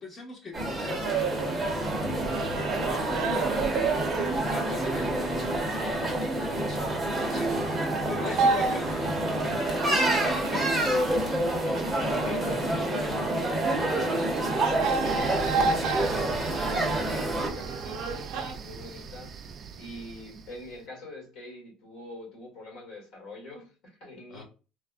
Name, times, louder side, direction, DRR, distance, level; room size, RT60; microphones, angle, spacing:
voice 1, 0.0-12.9 14.2-14.4 14.8-15.1 15.9-16.6 24.3-24.4, left 1 dB, 30° left, 1.0 m, -40 dB
sound 1, 0.5-17.5, right 1 dB, 10° right, 0.8 m, -28 dB
sound 2, 0.9-10.7 11.0-18.5, right 5 dB, 65° right, 0.6 m, -33 dB
voice 2, 12.2-19.4 19.8-24.4, left 2 dB, 70° left, 1.5 m, -43 dB
sound 3, 15.0-20.9, right 5 dB, 40° right, 0.3 m, -40 dB
3.3 x 2.1 x 2.3 m
cardioid pair, 155°, 0 cm